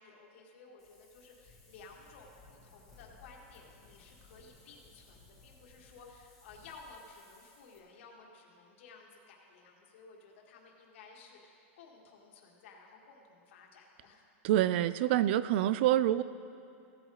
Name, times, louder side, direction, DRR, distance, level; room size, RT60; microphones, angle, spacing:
voice 1, 0.0-14.3, left 4 dB, 65° left, -1 dB, 1.9 m, -55 dB
Wind, 0.8-7.8, left 3 dB, 5° left, 2.0 m, -60 dB
voice 2, 14.4-16.2, right 12 dB, 55° right, 16 dB, 0.3 m, -26 dB
16.0 x 8.9 x 3.2 m, 2.6 s
supercardioid pair, 155°, 7 cm